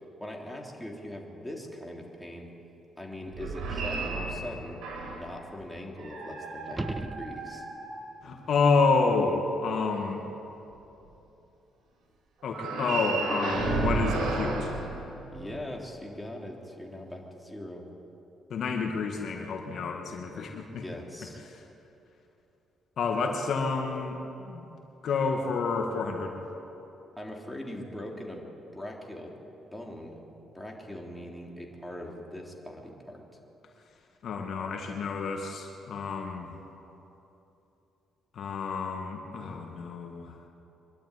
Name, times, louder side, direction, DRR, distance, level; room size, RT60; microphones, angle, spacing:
voice 1, 0.2-2.5 3.0-4.8 5.1-7.7 15.3-17.8 20.7-21.4 27.2-29.3 29.7-30.2 30.5-33.2, left 1 dB, 5° left, -1 dB, 3.5 m, -41 dB
sound 1, 3.3-5.3 6.0-8.4 12.5-15.6, right 3 dB, 75° right, 5.0 m, -33 dB
sound 2, 6.6-7.9 12.8-12.9, right 2 dB, 15° right, 0.8 m, -37 dB
voice 2, 8.2-10.2 12.4-14.7 18.5-20.8 21.5-21.6 23.0-24.8 25.0-26.4 34.2-36.5 38.3-40.3, left 4 dB, 65° left, 3 dB, 2.1 m, -29 dB
24.0 x 12.0 x 9.9 m, 3.0 s
cardioid pair, 90°, 0 cm